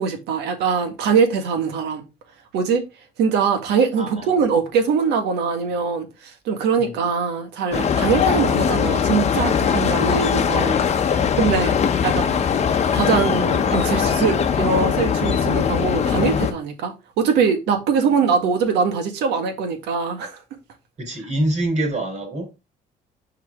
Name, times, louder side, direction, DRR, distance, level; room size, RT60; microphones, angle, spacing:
voice 1, 0.0-2.0 2.5-2.8 3.2-10.8 11.0-11.8 12.0-12.3 12.9-20.4, right 6 dB, 85° right, 1.7 m, -22 dB
voice 2, 4.0-4.4 6.8-7.0 18.0-18.6 21.0-22.5, right 1 dB, 45° right, 3.7 m, -26 dB
sound 1, 7.7-16.5, left 7 dB, 40° left, 0.9 m, -20 dB
6.6 x 4.8 x 3.6 m
cardioid pair, 110°, 17 cm